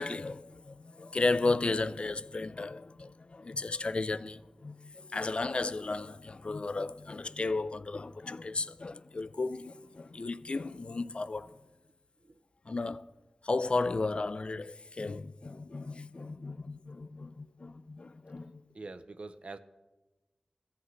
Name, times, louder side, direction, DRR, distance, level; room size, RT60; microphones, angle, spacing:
voice 1, 0.0-11.7 12.7-13.1 13.4-18.6, left 3 dB, 50° left, 0.3 m, -34 dB
voice 2, 18.7-19.6, right 3 dB, 60° right, 0.5 m, -44 dB
14.5 x 5.7 x 3.2 m
cardioid pair, 40°, 2 cm